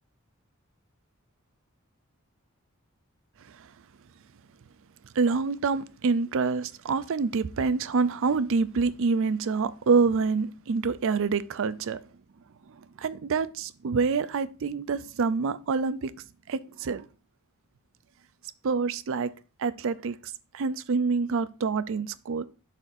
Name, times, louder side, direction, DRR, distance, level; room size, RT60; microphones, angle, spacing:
voice 1, 5.1-12.0 12.7-16.1 16.5-17.1 18.6-19.3 19.6-22.4, right 4 dB, 65° right, 0.4 m, -27 dB
11.5 x 4.1 x 2.6 m
head